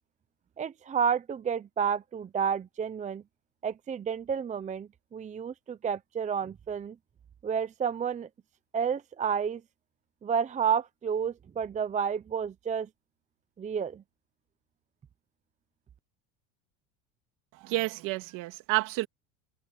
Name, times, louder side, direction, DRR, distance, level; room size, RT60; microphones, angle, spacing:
voice 1, 0.6-3.2 3.6-6.9 7.4-8.3 8.7-9.6 10.2-12.9 13.6-14.0, right 7 dB, 20° right, 0.7 m, -30 dB
voice 2, 17.5-19.1, right 21 dB, 60° right, 2.9 m, -30 dB
supercardioid pair, 115°, 36 cm